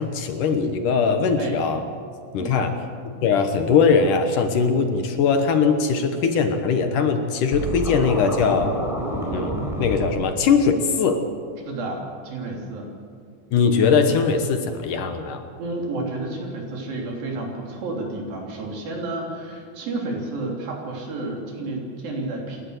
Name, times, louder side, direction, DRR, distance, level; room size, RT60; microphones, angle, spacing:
voice 1, 0.0-1.8 2.3-2.7 3.2-8.7 9.3-11.2 13.5-15.4, left 5 dB, 65° left, 7 dB, 2.4 m, -20 dB
voice 2, 2.4-2.7 11.7-12.9 15.6-22.6, right 2 dB, 70° right, 0 dB, 4.9 m, -31 dB
Scratching (performance technique), 7.5-10.1, right 1 dB, ahead, 3.8 m, -28 dB
27.5 x 12.0 x 8.1 m, 2.3 s
omnidirectional pair, 4.4 m